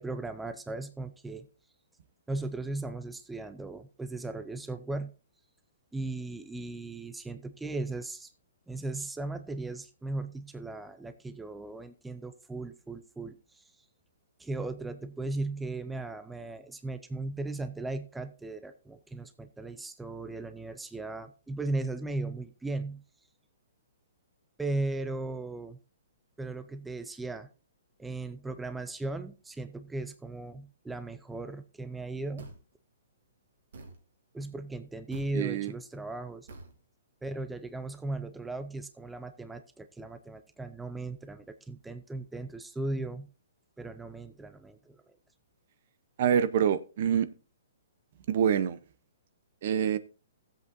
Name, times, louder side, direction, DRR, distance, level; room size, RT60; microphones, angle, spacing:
voice 1, 0.0-1.5 2.3-5.1 5.9-8.3 8.7-13.7 14.4-23.0 24.6-25.8 26.4-27.5 28.0-32.5 34.3-36.5 37.2-43.3 43.8-45.0, right 2 dB, 5° right, 10 dB, 0.5 m, -37 dB
sound 1, 32.4-32.7 33.7-34.0 35.1-35.4 36.5-36.8, right 2 dB, 75° right, 2.5 m, -45 dB
voice 2, 35.3-35.7 46.2-47.3 48.3-48.8 49.6-50.0, right 8 dB, 50° right, 15 dB, 0.7 m, -26 dB
15.5 x 7.8 x 2.6 m, 0.34 s
hypercardioid pair, 155°, 0 cm